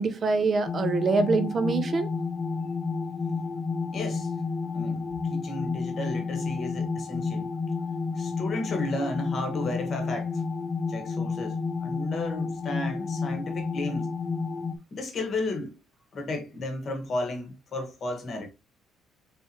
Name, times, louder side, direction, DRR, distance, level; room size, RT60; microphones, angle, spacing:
voice 1, 0.0-2.1, right 4 dB, 30° right, 0.6 m, -25 dB
sound 1, 0.7-14.8, left 4 dB, 20° left, 0.4 m, -31 dB
voice 2, 3.9-4.3 4.7-7.5 8.2-10.4 10.9-14.1 14.9-15.8 16.1-18.5, left 2 dB, 35° left, 1.1 m, -33 dB
4.2 x 3.6 x 2.7 m
cardioid pair, 180°, 0 cm